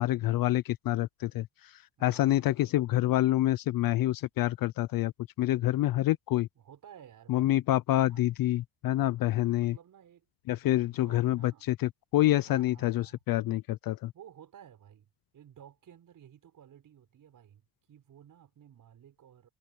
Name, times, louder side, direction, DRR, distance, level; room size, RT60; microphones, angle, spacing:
voice 1, 0.0-1.7 2.0-5.1 5.4-6.5 7.3-9.8 10.5-14.1, left 15 dB, 50° left, 0.5 m, -27 dB
voice 2, 2.0-2.5 6.5-7.6 8.1-8.4 9.6-10.3 10.6-11.7 12.5-13.2 14.1-19.5, right 9 dB, 45° right, 6.5 m, -54 dB
cardioid pair, 170°, 46 cm